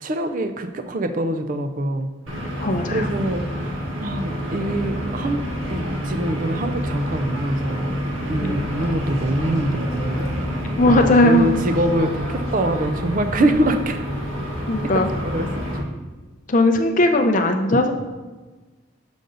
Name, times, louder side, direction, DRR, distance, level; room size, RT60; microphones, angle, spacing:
voice 1, 0.0-2.1 2.4-2.6 2.9-5.4 5.7-8.0 8.3-10.6 10.8-14.0 14.9-15.5 15.7-15.9, right 1 dB, 40° right, 8 dB, 0.4 m, -24 dB
sound 1, 2.3-15.8, equal, 75° right, 1.3 m, -28 dB
voice 2, 2.6-3.1 8.4-8.6 10.8-11.5 14.7-15.1 16.5-17.9, left 1 dB, 40° left, 5 dB, 0.6 m, -18 dB
6.7 x 5.3 x 3.8 m, 1.3 s
head